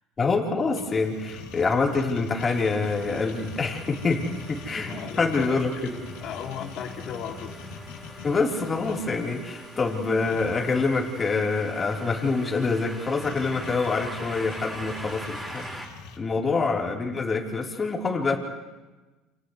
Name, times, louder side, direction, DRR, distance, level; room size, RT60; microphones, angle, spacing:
voice 1, 0.2-6.0 8.2-15.6 16.2-18.4, left 4 dB, 25° left, -1 dB, 4.1 m, -26 dB
sound 1, 0.7-16.2, left 4 dB, 90° left, 2.6 m, -43 dB
sound 2, 2.4-15.9, right 1 dB, 5° right, 5.6 m, -43 dB
voice 2, 4.9-5.8 6.2-7.5 9.9-10.4, left 8 dB, 55° left, 1 dB, 2.9 m, -37 dB
29.5 x 29.0 x 3.3 m, 1.2 s
supercardioid pair, 115°, 0 cm